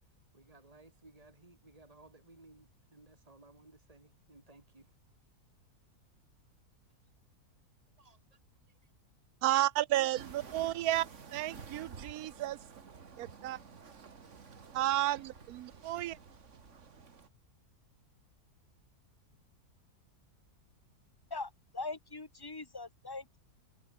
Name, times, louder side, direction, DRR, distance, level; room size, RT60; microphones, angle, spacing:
voice 1, 0.3-4.9 8.0-8.4 8.7-8.9, right 2 dB, 25° right, 3.3 m, -60 dB
voice 2, 9.4-11.1 11.3-12.6 13.2-13.6 14.7-16.2, right 14 dB, 75° right, 1.0 m, -32 dB
sound 1, 10.2-17.3, right 5 dB, 50° right, 2.0 m, -51 dB
voice 3, 21.3-23.4, left 3 dB, 15° left, 1.5 m, -41 dB
omnidirectional pair, 1.7 m